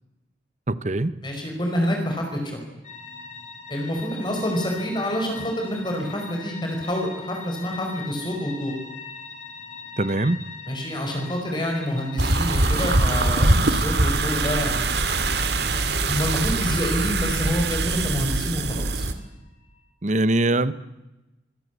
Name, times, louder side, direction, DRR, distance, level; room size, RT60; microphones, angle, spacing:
voice 1, 0.7-1.1 10.0-10.4 20.0-20.7, right 2 dB, 40° right, 15 dB, 0.9 m, -22 dB
voice 2, 1.2-2.6 3.7-8.8 10.7-15.0 16.0-19.1, equal, 25° left, 2 dB, 5.1 m, -27 dB
sound 1, 2.8-19.8, left 5 dB, 40° left, 6.9 m, -42 dB
sound 2, 12.2-19.1, right 2 dB, 60° right, 2.3 m, -23 dB
26.0 x 21.0 x 8.2 m, 0.99 s
head